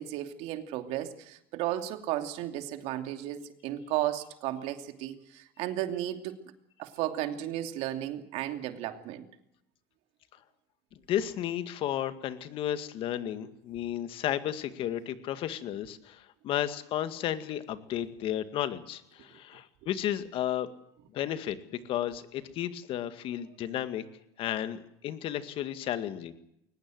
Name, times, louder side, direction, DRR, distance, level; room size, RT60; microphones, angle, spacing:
voice 1, 0.0-6.4 6.8-9.2, right 13 dB, 60° right, 7 dB, 2.9 m, -34 dB
voice 2, 11.1-20.7 21.1-24.0 24.4-26.3, left 11 dB, 50° left, 11 dB, 2.1 m, -33 dB
22.0 x 20.0 x 7.9 m, 0.77 s
supercardioid pair, 130°, 12 cm